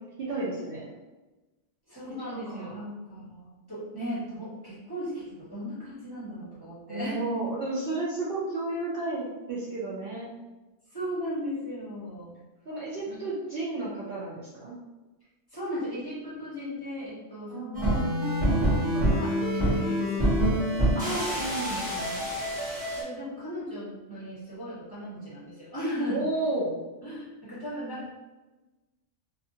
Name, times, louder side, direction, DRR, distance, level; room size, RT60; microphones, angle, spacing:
voice 1, 0.2-0.9 2.3-2.9 6.9-10.3 12.7-14.7 17.5-18.0 20.9-22.2 26.1-26.8, right 2 dB, 60° right, -6 dB, 0.7 m, -32 dB
voice 2, 1.9-7.2 10.9-12.4 13.1-13.2 15.5-18.3 18.6-22.0 22.9-26.2 27.0-28.1, equal, 20° left, -11 dB, 0.9 m, -37 dB
sound 1, 17.7-23.0, equal, 10° right, 0.9 m, -26 dB
2.6 x 2.4 x 2.6 m, 1.1 s
omnidirectional pair, 1.2 m